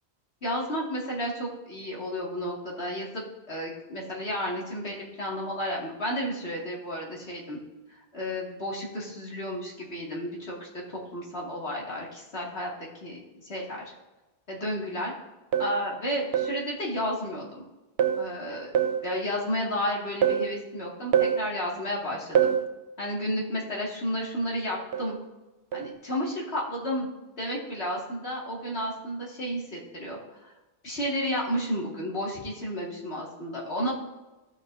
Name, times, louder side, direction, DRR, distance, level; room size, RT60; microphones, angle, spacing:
voice 1, 0.4-3.2 3.5-7.6 8.1-13.8 14.5-15.1 15.6-17.6 18.2-18.7 19.0-22.5 23.0-25.2 25.7-30.5 30.8-34.0, equal, 75° left, -4 dB, 2.5 m, -32 dB
sound 1, 15.5-15.8 16.3-16.6 18.0-18.3 18.7-19.1 20.2-20.5 21.1-21.5 22.4-22.7 24.9-25.2 25.7-25.9, right 9 dB, 70° right, 0.9 m, -24 dB
16.5 x 5.9 x 2.7 m, 1.1 s
omnidirectional pair, 1.1 m